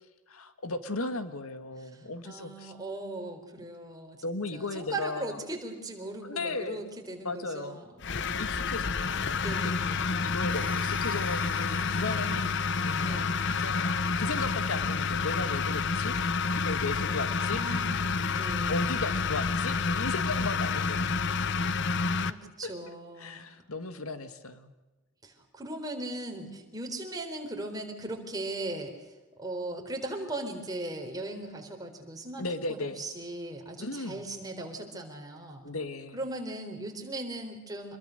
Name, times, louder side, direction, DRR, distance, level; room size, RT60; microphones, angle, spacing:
voice 1, 0.3-2.7 4.2-5.4 6.2-6.9 7.2-7.9 8.4-9.7 10.2-12.4 12.8-13.8 14.2-16.2 16.5-17.6 18.7-21.3 22.0-22.1 22.6-22.7 23.2-24.7 32.4-33.0 33.8-34.2 35.6-36.2, left 3 dB, 85° left, 10 dB, 1.9 m, -36 dB
voice 2, 1.9-4.2 4.5-8.3 9.4-10.4 11.7-12.6 13.0-13.4 17.5-19.0 22.1-23.5 25.2-28.9 29.4-32.4 32.7-35.6 36.1-38.0, right 2 dB, 20° right, 3 dB, 4.1 m, -39 dB
sound 1, 8.0-22.3, left 5 dB, 55° left, 0.9 m, -29 dB
sound 2, 10.5-15.4, equal, 10° left, 2.9 m, -46 dB
27.0 x 22.0 x 6.7 m, 1.1 s
head